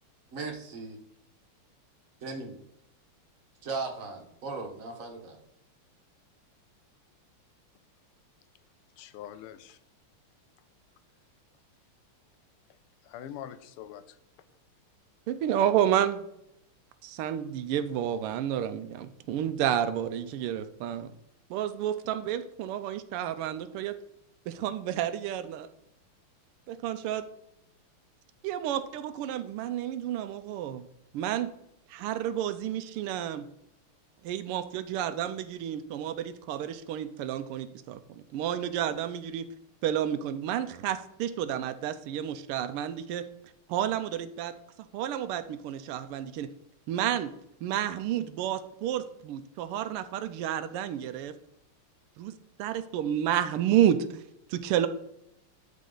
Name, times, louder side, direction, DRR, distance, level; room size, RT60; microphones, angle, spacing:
voice 1, 0.3-1.0 2.2-2.6 3.6-5.4, right 3 dB, 45° right, 3 dB, 1.4 m, -37 dB
voice 2, 9.0-9.8 12.7-14.2, left 10 dB, 90° left, 13 dB, 1.5 m, -44 dB
voice 3, 15.3-16.2 17.0-21.1 21.5-24.0 24.5-25.7 26.7-27.2 28.4-30.8 31.1-31.5 31.9-33.5 34.2-39.5 39.8-43.3 43.7-44.5 44.9-46.5 46.9-47.3 47.6-51.3 52.2-54.2 54.5-54.9, right 10 dB, 85° right, 11 dB, 1.5 m, -30 dB
12.0 x 4.2 x 3.8 m, 0.78 s
omnidirectional pair, 2.4 m